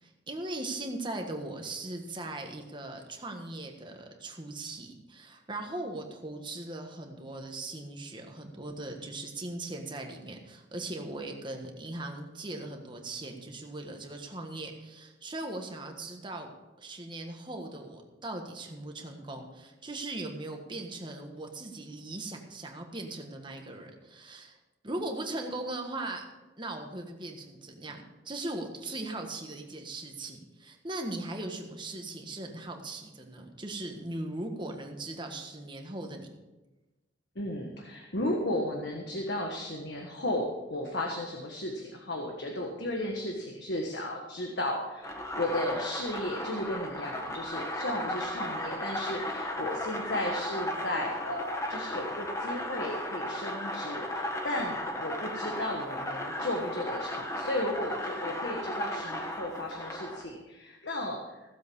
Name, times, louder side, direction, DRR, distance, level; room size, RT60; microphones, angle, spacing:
voice 1, 0.0-16.5 16.8-24.6 24.8-26.2 26.6-36.3, right 2 dB, 25° right, 3 dB, 1.5 m, -39 dB
voice 2, 37.3-61.2, left 1 dB, 65° left, 1 dB, 1.5 m, -34 dB
sound 1, 45.0-60.2, left 1 dB, 15° left, 1.4 m, -35 dB
16.0 x 7.6 x 5.5 m, 1.1 s
head